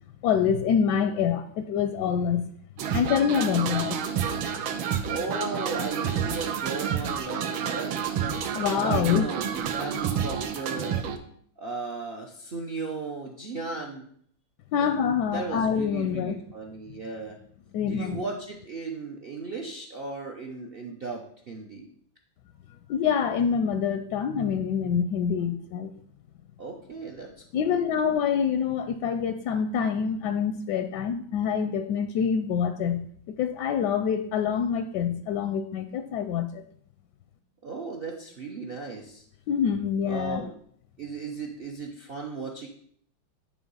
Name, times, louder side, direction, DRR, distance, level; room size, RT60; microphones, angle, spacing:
voice 1, 0.2-2.5 2.9-4.1 8.5-9.3 14.7-16.4 17.7-18.2 22.9-25.9 27.5-36.6 39.5-40.4, left 7 dB, 75° left, 9 dB, 1.0 m, -26 dB
sound 1, 2.8-11.2, right 8 dB, 90° right, 1.6 m, -29 dB
voice 2, 5.1-8.1 8.7-11.0 11.6-14.1 14.8-14.9 15.3-17.4 17.9-21.9 26.6-27.9 37.6-39.2 40.0-40.5 41.0-42.7, right 4 dB, 65° right, 1 dB, 0.5 m, -36 dB
9.6 x 3.6 x 5.4 m, 0.62 s
omnidirectional pair, 2.2 m